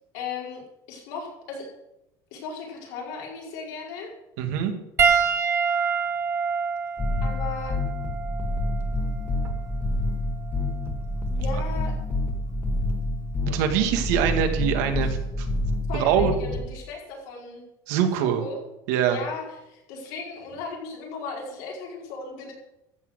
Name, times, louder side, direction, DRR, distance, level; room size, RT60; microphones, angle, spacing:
voice 1, 0.1-0.6 0.9-1.7 2.3-4.1 7.2-7.7 11.3-11.9 15.9-17.7 18.2-18.6 19.1-22.5, left 4 dB, 85° left, -2 dB, 5.1 m, -36 dB
voice 2, 4.4-4.7 13.5-15.5 15.9-16.3 17.9-18.4 18.9-19.2, right 9 dB, 90° right, 5 dB, 2.1 m, -23 dB
Piano, 5.0-9.7 10.6-10.8 12.7-12.8, right 6 dB, 30° right, 1.1 m, -26 dB
sound 1, 7.0-16.7, left 1 dB, 15° left, 1.6 m, -28 dB
14.0 x 6.6 x 8.0 m, 0.89 s
cardioid pair, 160°, 9 cm